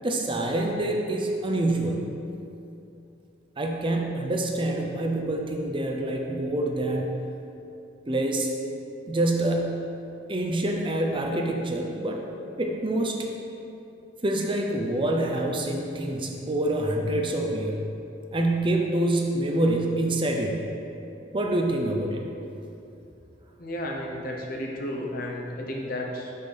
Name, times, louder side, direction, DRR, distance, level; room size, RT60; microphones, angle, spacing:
voice 1, 0.0-2.0 3.6-7.1 8.1-8.5 9.1-9.8 10.3-12.2 12.6-13.2 14.2-17.8 18.3-20.6 21.3-22.2, right 1 dB, 25° right, 1 dB, 0.6 m, -26 dB
voice 2, 23.6-26.3, left 1 dB, 50° left, 0 dB, 0.9 m, -33 dB
6.0 x 5.5 x 5.2 m, 2.8 s
head